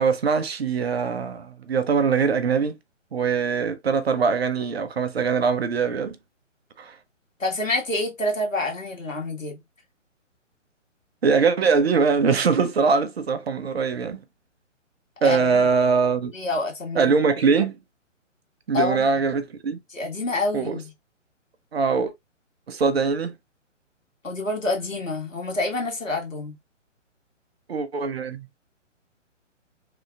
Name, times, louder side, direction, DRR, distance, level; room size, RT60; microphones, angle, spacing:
voice 1, 0.0-2.8 3.1-6.2 6.8-7.0 11.2-14.2 15.2-16.3 16.9-17.8 18.7-19.8 20.5-20.8 21.7-22.1 22.7-23.3 27.7-28.5, right 5 dB, 55° right, 0.7 m, -22 dB
voice 2, 7.4-9.6 15.2-15.6 16.3-17.1 18.7-19.1 19.9-20.9 24.2-26.5, left 2 dB, 80° left, 1.8 m, -27 dB
3.6 x 3.3 x 2.4 m
figure-of-eight pair, 135°, 38 cm